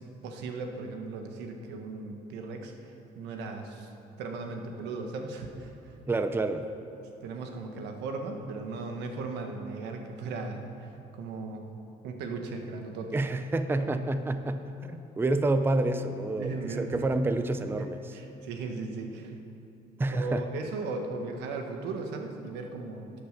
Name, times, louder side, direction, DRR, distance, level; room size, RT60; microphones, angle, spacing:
voice 1, 0.0-3.9 4.2-5.9 7.0-11.6 12.0-13.1 13.8-13.9 16.3-17.1 17.8-17.9 18.1-19.3 20.1-23.1, right 3 dB, 85° right, 4 dB, 1.4 m, -37 dB
voice 2, 6.1-6.7 13.1-18.1 20.0-20.5, right 2 dB, 15° right, 9 dB, 0.5 m, -28 dB
12.0 x 8.8 x 6.6 m, 2.8 s
cardioid pair, 110°, 17 cm